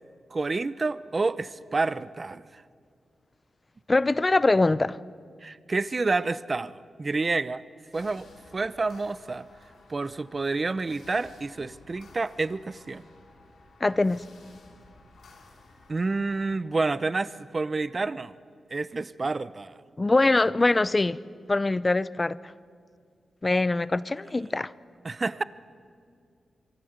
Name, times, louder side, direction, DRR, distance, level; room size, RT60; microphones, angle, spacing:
voice 1, 0.3-2.6 5.4-7.6 7.9-8.3 8.5-9.5 9.9-13.0 15.9-18.3 18.7-19.8 25.0-25.4, right 3 dB, 35° right, 0.8 m, -29 dB
voice 2, 3.9-5.0 13.8-14.2 20.0-21.2 21.5-22.4 23.4-24.7, left 2 dB, 25° left, 0.6 m, -23 dB
sound 1, 7.9-16.5, left 3 dB, 80° left, 6.5 m, -54 dB
26.5 x 23.5 x 8.0 m
wide cardioid pair, 95°, 0 cm